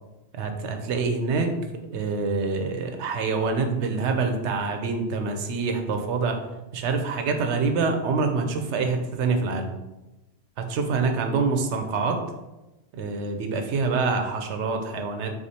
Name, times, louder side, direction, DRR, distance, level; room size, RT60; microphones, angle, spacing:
voice 1, 0.3-1.5 1.9-6.4 6.7-9.7 10.6-12.2 12.9-15.3, right 4 dB, 85° right, 5 dB, 0.9 m, -26 dB
4.9 x 3.5 x 2.8 m, 1.0 s
omnidirectional pair, 1.1 m